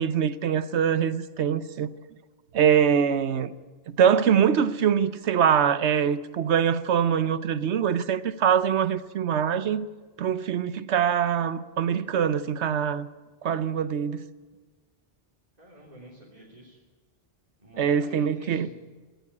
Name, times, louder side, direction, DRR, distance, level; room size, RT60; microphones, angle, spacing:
voice 1, 0.0-1.9 2.5-3.5 3.9-9.9 10.2-13.1 13.4-14.2 17.8-18.7, right 8 dB, 75° right, 1.1 m, -23 dB
voice 2, 15.6-16.8 17.6-18.7, right 1 dB, 35° right, 3.4 m, -48 dB
17.0 x 16.5 x 9.7 m
omnidirectional pair, 1.2 m